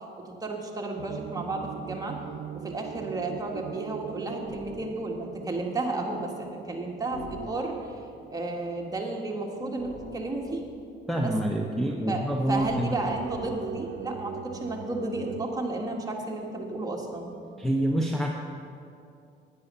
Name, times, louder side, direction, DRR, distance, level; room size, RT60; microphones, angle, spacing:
voice 1, 0.2-2.2 2.5-7.8 8.3-10.7 11.1-11.3 12.1-17.3, right 2 dB, 20° right, 0 dB, 1.8 m, -32 dB
sound 1, 1.0-10.7 11.1-11.2 11.9-15.5, right 9 dB, 60° right, 0.4 m, -42 dB
sound 2, 4.4-4.9 7.1-8.0 9.8-10.9 12.4-13.8, left 1 dB, 65° left, 2.0 m, -44 dB
voice 2, 11.1-12.9 17.6-18.3, right 1 dB, ahead, 0 dB, 0.9 m, -27 dB
10.0 x 9.5 x 5.6 m, 2.5 s
cardioid pair, 90°, 20 cm